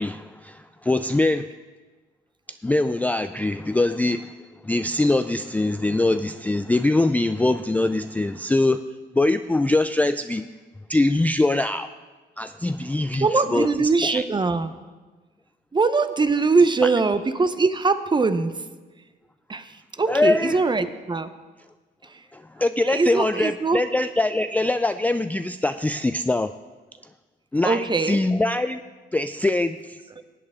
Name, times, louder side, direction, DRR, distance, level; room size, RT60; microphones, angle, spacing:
voice 1, 0.0-1.5 2.6-4.3 4.6-8.8 9.1-10.5 10.9-11.9 12.4-14.2 16.8-17.0 20.1-20.6 22.3-26.5 27.5-28.8 29.1-30.0, left 2 dB, 10° left, 9 dB, 0.3 m, -23 dB
voice 2, 13.2-14.7 15.7-18.6 19.5-19.7 20.0-21.3 22.9-23.8 27.6-28.2, right 4 dB, 25° right, 11 dB, 0.7 m, -22 dB
18.0 x 8.4 x 3.7 m, 1.3 s
cardioid pair, 90°, 20 cm